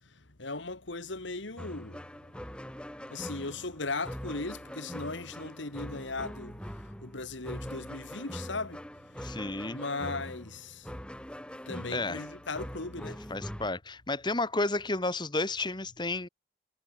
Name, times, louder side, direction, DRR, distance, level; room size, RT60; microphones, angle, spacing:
voice 1, 0.4-2.1 3.1-8.8 9.7-10.9 11.7-13.2, left 3 dB, 70° left, 2.2 m, -37 dB
sound 1, 1.6-13.7, equal, 5° left, 3.7 m, -42 dB
voice 2, 9.2-9.8 11.9-12.2 13.3-16.3, left 2 dB, 25° left, 1.9 m, -32 dB
head